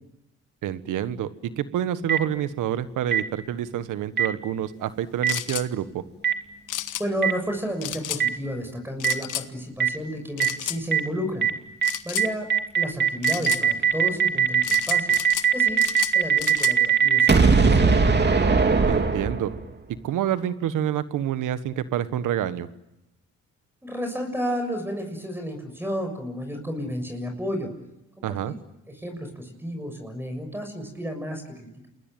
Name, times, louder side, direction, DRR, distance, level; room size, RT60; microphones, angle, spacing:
voice 1, 0.6-6.0 18.9-19.5 20.0-22.7 28.2-28.5, right 10 dB, 80° right, 12 dB, 1.5 m, -28 dB
Boom, 2.1-2.2 3.1-3.2 4.2-4.3 5.2-5.3 6.2-6.3 7.2-7.3 8.2-8.3 9.0-9.1 9.8-9.9 10.4-10.5 10.9-11.0 11.4-11.5 11.8-11.9 12.2-19.7, right 6 dB, 35° right, 2.8 m, -19 dB
sound 1, 5.3-5.7 6.7-7.0 7.8-8.2 9.0-9.5 10.4-10.8 11.8-12.3 13.2-13.6 14.6-15.5 15.8-16.7, left 12 dB, 75° left, 1.4 m, -31 dB
voice 2, 7.0-11.5 12.0-12.5 12.7-15.1 15.5-15.8 16.1-17.9 23.8-27.7 28.2-28.6 29.0-31.9, equal, 5° right, 4 dB, 6.8 m, -32 dB
29.0 x 21.0 x 9.1 m, 0.89 s
cardioid pair, 75°, 31 cm